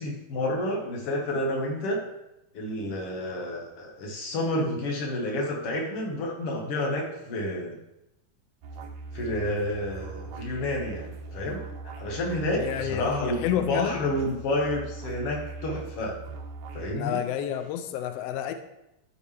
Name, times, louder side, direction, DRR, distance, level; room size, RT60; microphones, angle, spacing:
voice 1, 0.0-2.0 2.5-7.8 9.1-11.6 12.0-16.2 16.7-17.2, left 1 dB, 55° left, 0 dB, 2.2 m, -30 dB
sound 1, 8.6-16.9, right 3 dB, 75° right, 2.0 m, -40 dB
voice 2, 12.5-14.0 16.9-18.5, left 10 dB, 90° left, 8 dB, 1.3 m, -29 dB
12.5 x 5.1 x 3.3 m, 0.90 s
omnidirectional pair, 3.4 m